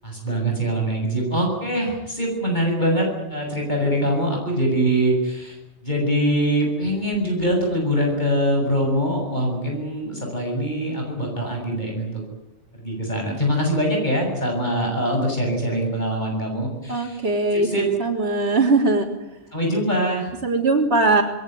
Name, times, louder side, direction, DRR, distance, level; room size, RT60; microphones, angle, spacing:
voice 1, 0.0-5.6 5.8-12.2 12.8-17.2 17.5-17.9 19.5-20.3, equal, 40° left, 1 dB, 7.5 m, -23 dB
voice 2, 16.9-17.7 18.0-19.1 20.4-21.2, right 3 dB, 65° right, -4 dB, 4.0 m, -20 dB
27.0 x 21.5 x 9.4 m, 0.86 s
omnidirectional pair, 1.1 m